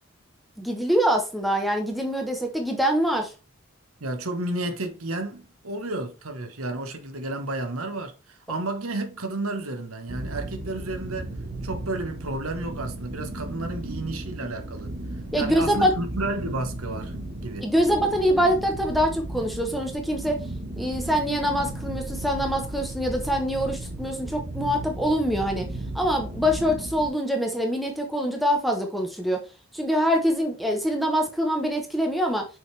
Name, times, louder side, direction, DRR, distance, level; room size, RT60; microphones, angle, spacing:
voice 1, 0.6-3.3 15.3-15.9 17.6-20.4 20.8-25.7 25.9-29.4 29.7-32.5, equal, ahead, 1.1 m, -24 dB
voice 2, 4.0-11.3 11.6-14.9 15.4-17.7, right 2 dB, 85° right, 1.2 m, -32 dB
sound 1, 10.1-27.1, right 1 dB, 50° right, 1.7 m, -35 dB
6.2 x 5.0 x 3.3 m
head